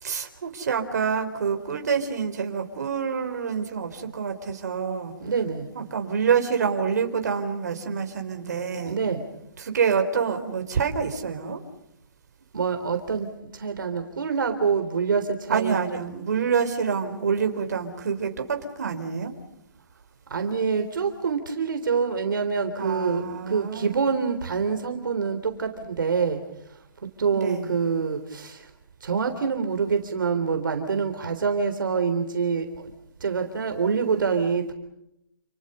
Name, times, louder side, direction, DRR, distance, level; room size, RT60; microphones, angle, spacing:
voice 1, 0.0-5.1 5.7-9.0 9.6-11.6 15.5-19.3 22.8-24.0 27.3-27.7, right 6 dB, 50° right, 6 dB, 4.0 m, -27 dB
voice 2, 5.2-5.7 8.9-9.3 12.5-13.3 13.5-16.0 20.3-26.4 27.2-28.7 29.0-32.9 33.2-34.7, right 5 dB, 65° right, 7 dB, 3.6 m, -26 dB
29.5 x 29.0 x 5.5 m, 0.82 s
hypercardioid pair, 175°, 12 cm